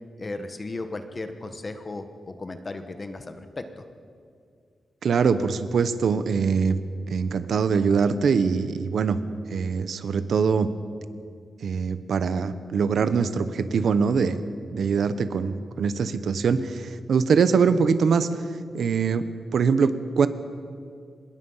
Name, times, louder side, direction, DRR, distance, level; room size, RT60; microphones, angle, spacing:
voice 1, 0.2-3.9, left 2 dB, 30° left, 8 dB, 1.3 m, -35 dB
voice 2, 5.0-6.8 7.1-9.2 9.5-10.7 11.6-14.4 14.7-18.5 18.7-19.2 19.5-20.3, right 5 dB, 70° right, 12 dB, 1.1 m, -23 dB
25.0 x 21.5 x 5.7 m, 2.3 s
wide cardioid pair, 130°, 0 cm